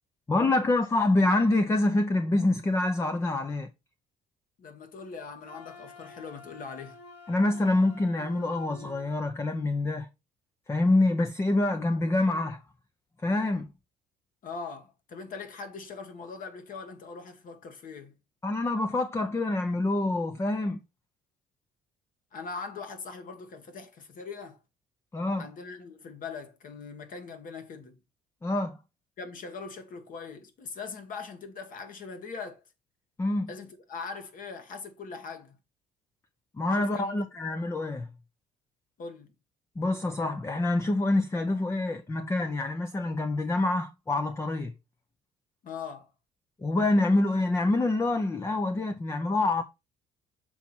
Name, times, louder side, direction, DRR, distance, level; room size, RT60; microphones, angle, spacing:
voice 1, 0.3-3.7 7.3-10.1 10.7-12.6 13.2-13.7 18.4-20.8 25.1-25.5 28.4-28.8 33.2-33.5 36.6-38.1 39.8-44.7 46.6-49.6, left 2 dB, 15° left, 0.5 m, -26 dB
voice 2, 4.6-7.0 14.4-18.1 22.3-24.6 25.4-28.0 29.2-32.6 33.5-35.6 36.8-37.2 39.0-39.3 45.6-46.1, left 5 dB, 55° left, 1.6 m, -41 dB
Wind instrument woodwind instrument, 5.4-9.1, left 2 dB, 85° left, 2.0 m, -49 dB
7.0 x 4.1 x 4.2 m
cardioid pair, 110°, 17 cm